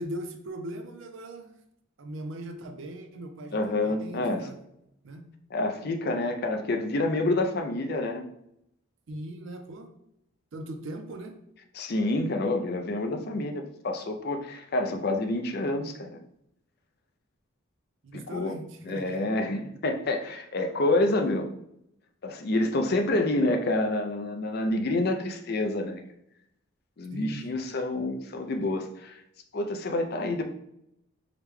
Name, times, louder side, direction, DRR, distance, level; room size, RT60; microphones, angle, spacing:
voice 1, 0.0-1.5 2.0-4.6 5.0-5.2 9.1-9.9 10.5-11.4 18.0-19.3 27.1-27.6, right 1 dB, 65° right, 6 dB, 0.5 m, -39 dB
voice 2, 3.5-4.5 5.5-8.2 11.7-16.2 18.1-18.5 18.9-21.5 22.2-26.0 27.0-29.1 29.5-30.4, left 2 dB, 45° left, 5 dB, 0.4 m, -28 dB
4.8 x 2.2 x 3.4 m, 0.78 s
head